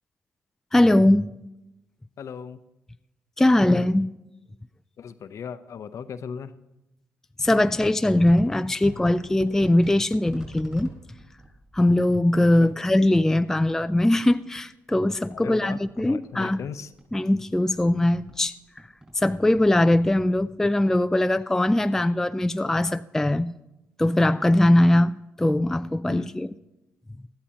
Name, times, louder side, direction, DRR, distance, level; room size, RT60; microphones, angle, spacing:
voice 1, 0.7-1.3 3.4-4.1 7.4-10.9 11.7-16.6 17.1-18.5 19.2-23.5 24.0-26.5, left 1 dB, 5° left, 0.3 m, -21 dB
voice 2, 2.2-2.6 5.0-6.5 12.6-12.7 15.3-16.9 26.1-26.3, left 7 dB, 55° left, 0.7 m, -37 dB
sound 1, 7.4-14.6 14.9-17.2 17.5-20.4, right 1 dB, 15° right, 5.1 m, -44 dB
19.0 x 12.5 x 2.9 m
supercardioid pair, 65°, 6 cm